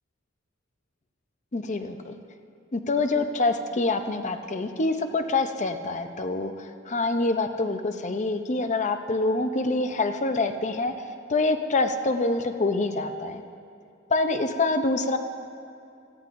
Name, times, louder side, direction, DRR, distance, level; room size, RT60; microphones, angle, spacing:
voice 1, 1.5-2.2 2.7-10.9 11.3-13.4 14.1-15.2, left 3 dB, 35° left, 7 dB, 0.7 m, -26 dB
18.5 x 14.5 x 2.6 m, 2.5 s
head